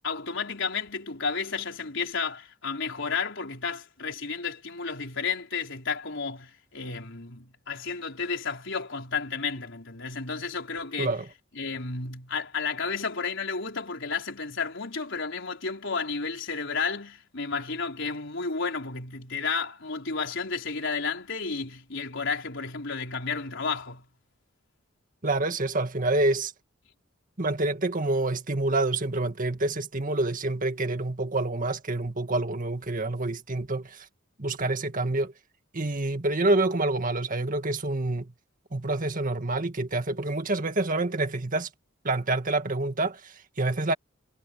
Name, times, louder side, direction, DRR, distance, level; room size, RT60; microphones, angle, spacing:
voice 1, 0.0-11.1 11.5-24.0, left 5 dB, 65° left, 4.5 m, -32 dB
voice 2, 25.2-26.5 27.4-34.1 34.4-35.3 35.7-38.3 38.7-41.7 42.0-43.9, right 2 dB, 40° right, 2.0 m, -27 dB
head